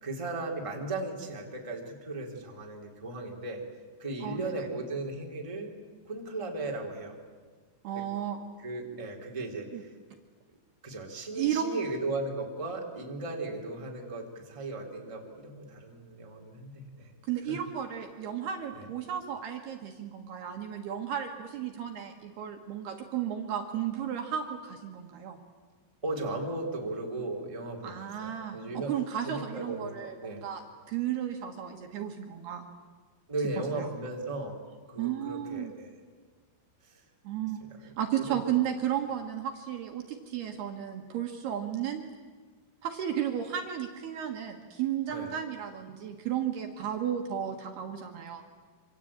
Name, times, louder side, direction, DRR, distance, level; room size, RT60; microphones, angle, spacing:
voice 1, 0.0-3.6 4.0-5.7 6.1-7.1 7.9-8.0 8.6-9.9 10.8-17.1 17.5-17.6 18.7-18.8 26.0-28.9 29.2-30.4 33.3-34.6 34.9-36.0 36.8-37.0 37.8-38.6 45.1-45.3, right 2 dB, 10° right, 0 dB, 2.7 m, -36 dB
voice 2, 4.2-4.7 7.8-8.4 9.7-9.8 11.3-11.8 17.2-25.4 27.8-30.6 30.9-32.6 33.7-33.9 35.0-35.7 37.2-42.0 42.8-48.4, right 9 dB, 65° right, 3 dB, 3.1 m, -34 dB
26.5 x 25.5 x 8.8 m, 1.5 s
omnidirectional pair, 5.6 m